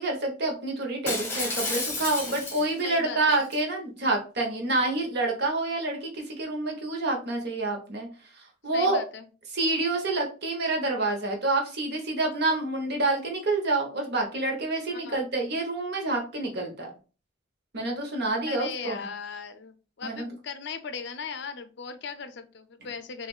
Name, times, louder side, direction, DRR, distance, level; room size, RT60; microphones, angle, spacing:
voice 1, 0.0-8.1 8.3-9.0 9.5-16.9 17.7-19.0 20.0-20.3, right 2 dB, 55° right, 1 dB, 1.2 m, -28 dB
Shatter, 1.1-2.9 3.3-3.6, left 2 dB, 10° left, 1.1 m, -31 dB
voice 2, 2.8-3.4 8.7-9.3 14.9-15.3 18.5-23.3, left 5 dB, 55° left, 10 dB, 0.5 m, -38 dB
5.9 x 2.6 x 2.4 m, 0.35 s
head